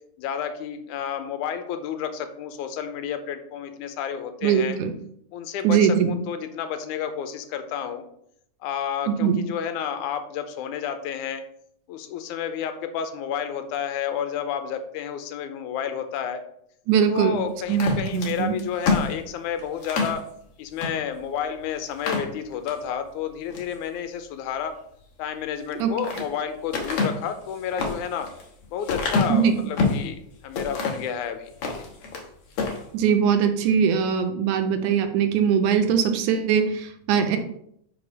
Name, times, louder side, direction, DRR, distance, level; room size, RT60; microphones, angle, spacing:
voice 1, 0.2-4.8 5.3-8.0 8.6-11.4 11.9-16.4 17.1-20.3 20.6-24.7 25.2-28.3 28.7-31.8, left 8 dB, 90° left, 8 dB, 2.1 m, -31 dB
voice 2, 4.4-4.9 5.6-6.1 9.1-9.4 16.9-17.4 17.7-18.5 25.8-25.9 29.3-29.6 32.9-37.4, right 7 dB, 85° right, 6 dB, 2.2 m, -21 dB
sound 1, 17.7-20.2 20.8-20.9 21.3-21.4 21.9-22.8 23.3-23.7 25.5-26.3 26.7-30.1 30.5-31.1 31.5-32.3 32.5-32.8, left 4 dB, 60° left, 1.8 m, -27 dB
5.2 x 4.9 x 5.2 m, 0.72 s
omnidirectional pair, 3.4 m